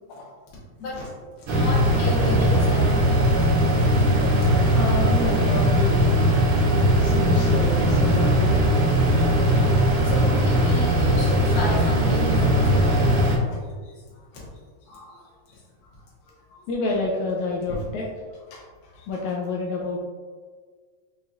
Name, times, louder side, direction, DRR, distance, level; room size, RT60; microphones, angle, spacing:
voice 1, 0.8-3.1 3.4-3.5 3.9-4.0 4.4-4.5 8.9-9.0 9.4-14.2 14.8-15.6 15.9-16.0 16.5-16.6 19.0-19.1, left 2 dB, 55° left, -6 dB, 1.8 m, -34 dB
sound 1, 1.5-13.4, equal, 80° right, 2.1 m, -19 dB
voice 2, 4.5-6.1 7.0-8.6 9.6-9.7 10.0-10.1 13.5-13.6 16.7-18.1 18.5-20.0, left 3 dB, 80° left, -2 dB, 1.9 m, -29 dB
5.6 x 3.0 x 2.4 m, 1.5 s
omnidirectional pair, 3.4 m